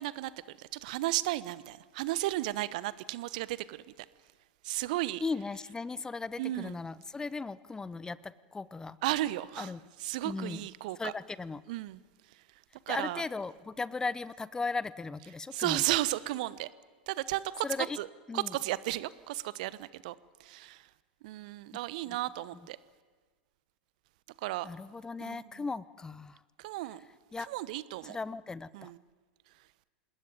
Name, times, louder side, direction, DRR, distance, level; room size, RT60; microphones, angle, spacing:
voice 1, 0.0-3.8 4.6-5.2 6.4-6.8 9.0-9.7 10.0-11.1 11.7-12.0 12.9-13.2 15.5-16.7 17.1-17.7 18.0-18.1 18.3-20.1 20.4-20.9 21.2-22.8 24.4-24.7 25.2-25.4 26.6-27.1 27.5-28.2 28.7-29.0, right 16 dB, 55° right, 18 dB, 1.1 m, -34 dB
voice 2, 5.2-9.0 9.6-9.8 10.2-10.7 11.0-11.6 12.9-16.0 17.6-18.0 18.3-18.6 22.1-22.2 24.6-26.4 27.3-27.5 28.0-28.9, left 4 dB, 15° left, 19 dB, 0.7 m, -37 dB
27.0 x 20.0 x 9.4 m, 1.4 s
figure-of-eight pair, 85°, 5 cm